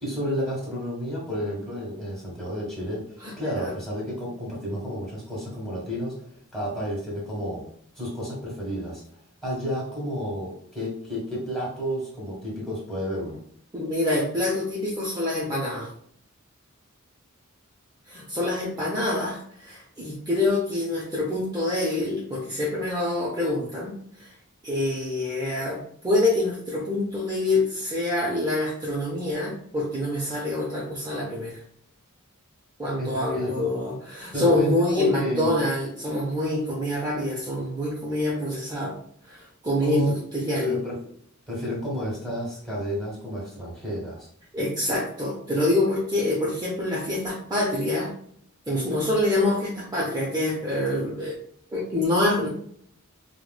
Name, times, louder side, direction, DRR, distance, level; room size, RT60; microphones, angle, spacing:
voice 1, 0.0-3.0 3.4-6.3 6.5-7.6 7.9-9.0 9.4-13.4 33.0-33.7 34.3-35.5 39.8-40.1 40.5-41.0 41.5-44.3, equal, ahead, -5 dB, 1.4 m, -31 dB
voice 2, 3.2-3.7 13.7-15.9 18.1-24.3 24.6-31.6 32.8-39.0 39.2-40.8 44.5-48.1 48.7-51.4 51.7-52.5, left 1 dB, 20° right, -5 dB, 0.6 m, -26 dB
4.6 x 2.1 x 2.3 m, 0.64 s
head